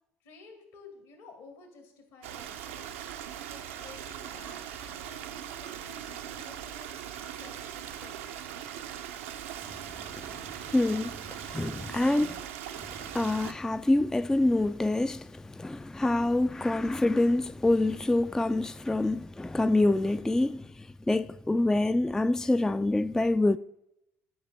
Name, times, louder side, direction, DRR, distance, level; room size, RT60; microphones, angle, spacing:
voice 1, 0.2-2.9 3.5-8.3 12.2-12.5, left 4 dB, 65° left, 2.1 m, -53 dB
Stream, 2.2-13.5, right 10 dB, 75° right, 0.6 m, -40 dB
voice 2, 10.2-12.3 12.8-23.6, left 2 dB, 10° left, 0.3 m, -26 dB
12.0 x 5.3 x 3.4 m
figure-of-eight pair, 55°, 7 cm